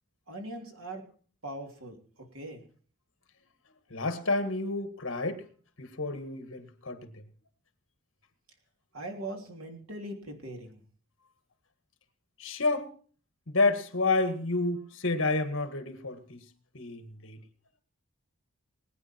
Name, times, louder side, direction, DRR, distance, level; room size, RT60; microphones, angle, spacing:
voice 1, 0.3-1.0 1.4-2.6 8.9-10.8, right 1 dB, 70° right, 3.2 m, -41 dB
voice 2, 3.9-5.5 5.8-7.1 12.4-12.9 13.5-16.4 16.7-17.4, left 3 dB, 60° left, 1.9 m, -29 dB
20.5 x 9.6 x 4.6 m
head